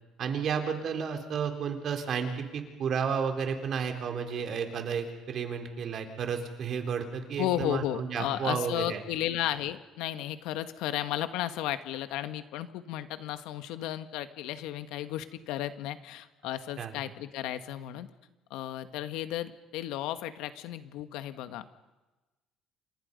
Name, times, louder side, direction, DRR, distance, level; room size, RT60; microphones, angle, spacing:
voice 1, 0.2-9.0 16.8-17.0, right 6 dB, 45° right, 5 dB, 3.8 m, -32 dB
voice 2, 7.4-18.1 18.5-21.7, left 13 dB, 85° left, 10 dB, 1.6 m, -34 dB
29.0 x 27.0 x 5.4 m, 1.1 s
cardioid pair, 140°, 0 cm